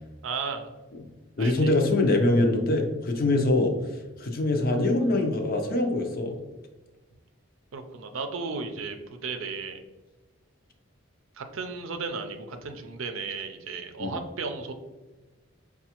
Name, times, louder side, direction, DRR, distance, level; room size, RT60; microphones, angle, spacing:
voice 1, 0.2-0.7 1.4-1.5 7.7-9.0 9.2-9.8 11.4-14.7, right 4 dB, 80° right, 6 dB, 0.5 m, -34 dB
voice 2, 1.4-3.7 4.2-6.4 14.0-14.2, left 2 dB, 45° left, 4 dB, 0.5 m, -23 dB
5.5 x 2.3 x 2.8 m, 1.2 s
head